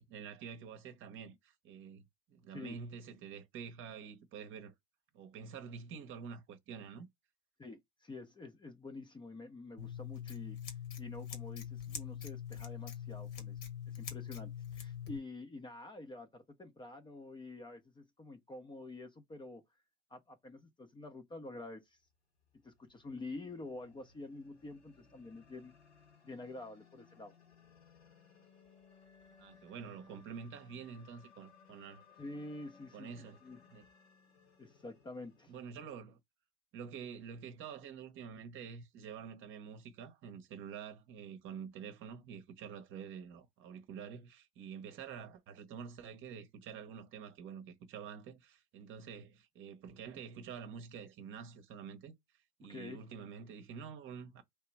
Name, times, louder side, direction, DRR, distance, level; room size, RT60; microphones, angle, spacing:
voice 1, 0.0-4.7 5.1-7.1 29.4-32.0 32.9-33.4 33.7-33.8 35.5-36.2 36.7-52.1 52.6-54.4, right 7 dB, 40° right, 0.9 m, -48 dB
voice 2, 7.6-19.6 20.1-22.0 22.6-25.7 26.2-27.3 32.2-33.6 34.6-35.5 52.6-53.1, left 2 dB, 15° left, 0.7 m, -48 dB
Scissors, 9.8-15.2, left 9 dB, 55° left, 1.4 m, -43 dB
sound 1, 22.5-35.6, left 6 dB, 80° left, 2.1 m, -63 dB
3.4 x 2.9 x 4.5 m
figure-of-eight pair, 75°, 31 cm